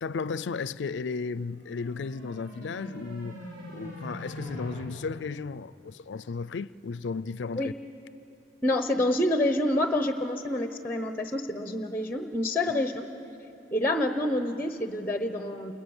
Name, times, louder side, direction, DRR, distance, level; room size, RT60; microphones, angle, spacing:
voice 1, 0.0-3.4 3.7-7.7, left 4 dB, 80° left, 0.4 m, -34 dB
sound 1, 1.5-4.8, left 1 dB, 50° right, 6.6 m, -42 dB
voice 2, 8.6-13.1 13.7-15.7, left 1 dB, 10° left, 0.8 m, -27 dB
28.5 x 21.0 x 7.2 m
head